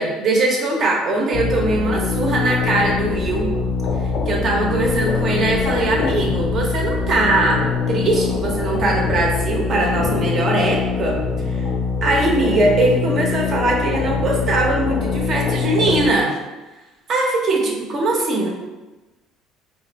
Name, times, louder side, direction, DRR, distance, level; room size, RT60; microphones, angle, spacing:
voice 1, 0.0-3.5 4.3-11.2 11.5-11.6 12.0-16.4 17.1-18.5, right 2 dB, 45° right, 0 dB, 0.8 m, -20 dB
sound 1, 1.3-16.1, left 5 dB, 65° left, 0.5 m, -23 dB
2.6 x 2.5 x 4.0 m, 1.1 s
cardioid pair, 120°, 0 cm